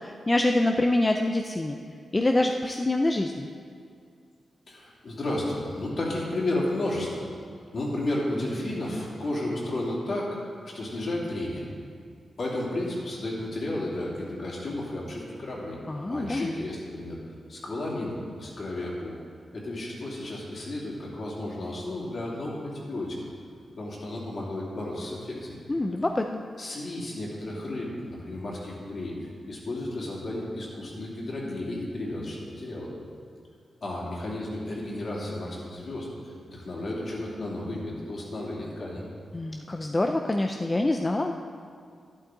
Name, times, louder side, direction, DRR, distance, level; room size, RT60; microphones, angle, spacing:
voice 1, 0.0-1.8 2.1-3.5 15.9-16.5 25.7-26.4 39.3-41.3, left 2 dB, 20° left, 4 dB, 0.4 m, -25 dB
voice 2, 4.7-7.3 7.7-10.4 10.6-11.7 12.4-15.8 16.1-17.2 17.5-19.2 19.5-23.2 23.7-25.6 26.6-32.9 33.8-39.0, left 1 dB, 50° left, -4 dB, 2.9 m, -33 dB
12.0 x 11.5 x 3.9 m, 2.3 s
wide cardioid pair, 130°, 0 cm